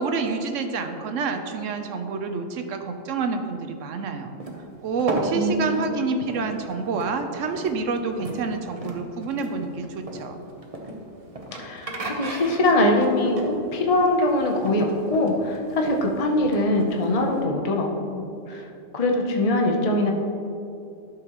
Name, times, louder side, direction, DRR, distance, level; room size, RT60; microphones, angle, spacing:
voice 1, 0.0-4.3 4.8-10.4, right 4 dB, 70° right, 6 dB, 1.0 m, -28 dB
sound 1, 4.4-17.4, right 2 dB, 30° right, 0.8 m, -36 dB
voice 2, 5.3-5.9 11.6-18.7 18.9-20.1, left 1 dB, 35° left, 1 dB, 0.6 m, -23 dB
11.5 x 6.5 x 3.0 m, 2.7 s
omnidirectional pair, 1.4 m